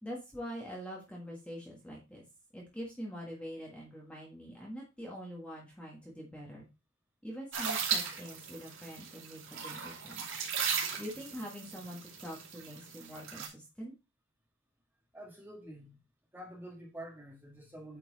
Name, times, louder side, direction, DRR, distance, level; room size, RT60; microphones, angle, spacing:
voice 1, 0.0-2.2 2.5-6.7 7.2-10.3 11.0-13.9, equal, 5° left, 1.6 m, -44 dB
sound 1, 7.5-13.5, right 6 dB, 70° right, 2.7 m, -37 dB
voice 2, 15.1-16.0 16.3-18.0, right 1 dB, 10° right, 1.8 m, -47 dB
8.9 x 4.4 x 4.1 m
head